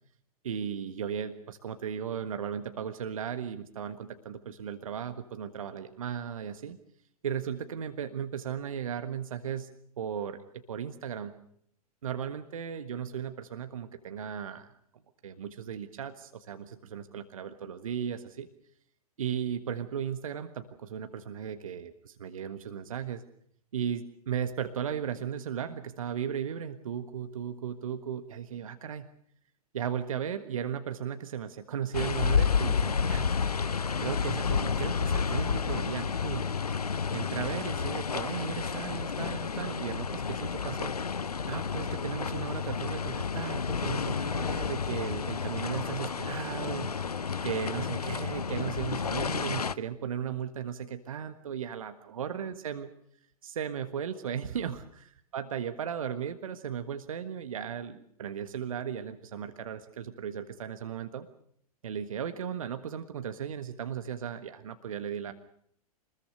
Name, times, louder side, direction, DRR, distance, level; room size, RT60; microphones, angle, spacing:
voice 1, 0.4-6.8 7.2-11.3 12.0-14.8 15.2-18.5 19.2-23.2 23.7-29.1 29.7-33.3 34.0-36.5 37.1-40.9 41.5-52.9 53.4-61.3 61.8-65.3, right 8 dB, 60° right, 9 dB, 1.5 m, -36 dB
sound 1, 31.9-49.7, left 6 dB, 75° left, 0.8 m, -31 dB
26.0 x 21.0 x 6.5 m, 0.68 s
figure-of-eight pair, 100°, 20 cm